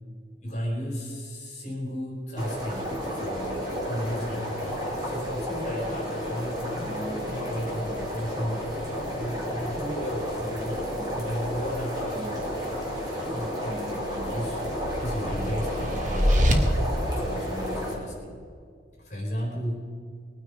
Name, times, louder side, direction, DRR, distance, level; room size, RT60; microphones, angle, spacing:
voice 1, 0.4-12.5 13.3-16.7 17.1-18.4 19.0-19.8, equal, 45° left, -3 dB, 4.3 m, -34 dB
sound 1, 2.4-17.9, equal, 25° right, 4.3 m, -32 dB
sound 2, 13.7-16.5, equal, 45° right, 1.7 m, -26 dB
22.0 x 9.6 x 5.0 m, 2.2 s
head